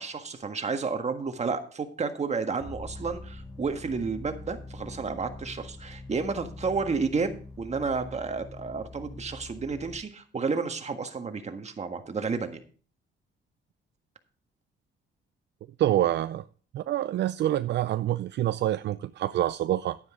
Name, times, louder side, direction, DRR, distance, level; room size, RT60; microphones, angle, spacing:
voice 1, 0.0-12.6, right 4 dB, 35° right, 1.6 m, -31 dB
sound 1, 2.6-10.0, left 2 dB, 15° left, 2.7 m, -44 dB
voice 2, 15.8-16.4 16.7-20.0, right 13 dB, 60° right, 0.4 m, -26 dB
10.5 x 9.7 x 3.7 m
cardioid pair, 90°, 20 cm